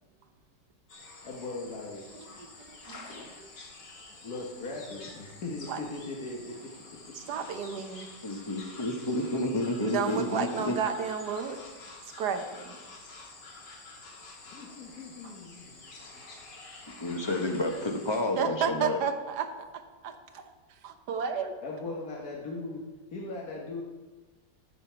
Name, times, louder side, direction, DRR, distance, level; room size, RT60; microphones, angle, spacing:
sound 1, 0.9-18.2, left 3 dB, 75° left, 2.5 m, -48 dB
voice 1, 1.2-2.1 4.2-6.7 7.1-7.2 14.5-16.2 21.6-22.9 23.1-23.8, left 3 dB, 60° left, -2 dB, 1.7 m, -39 dB
voice 2, 2.1-3.5 5.7-5.8 7.2-8.1 9.8-11.6 12.2-12.8 15.2-15.3 18.4-19.5 19.7-20.4 20.8-21.5, right 6 dB, 65° right, 7 dB, 1.4 m, -32 dB
voice 3, 8.2-10.7 17.0-19.0, left 1 dB, 25° left, 3 dB, 0.5 m, -30 dB
14.0 x 6.7 x 4.5 m, 1.3 s
omnidirectional pair, 1.9 m